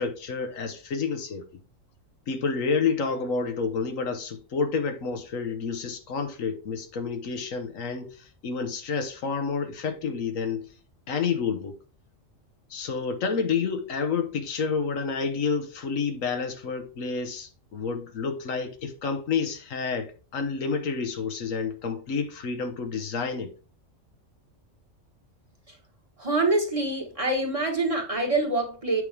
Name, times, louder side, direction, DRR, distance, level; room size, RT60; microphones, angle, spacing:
voice 1, 0.0-1.4 2.3-10.7 11.1-11.8 12.7-23.5, left 5 dB, 80° left, 1.4 m, -29 dB
voice 2, 26.2-29.0, right 2 dB, 25° right, 1.4 m, -25 dB
8.0 x 5.2 x 3.3 m
omnidirectional pair, 1.3 m